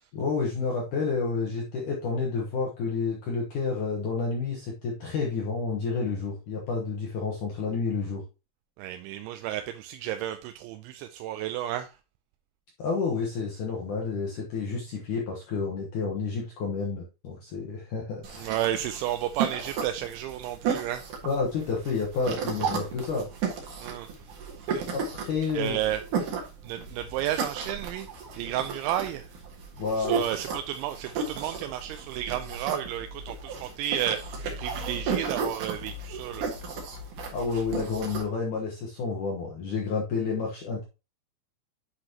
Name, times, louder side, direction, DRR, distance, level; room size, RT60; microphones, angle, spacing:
voice 1, 0.1-8.2 12.8-18.5 21.2-23.3 24.9-25.8 29.8-30.2 37.3-40.8, left 4 dB, 75° left, 1.8 m, -30 dB
voice 2, 8.8-12.0 18.4-21.1 23.8-24.1 24.6-24.9 25.5-26.3 26.6-28.1 28.3-29.3 30.0-36.5, right 12 dB, 85° right, 2.9 m, -32 dB
sound 1, 18.2-38.2, right 5 dB, 55° right, 2.6 m, -34 dB
9.9 x 6.1 x 2.9 m
omnidirectional pair, 5.5 m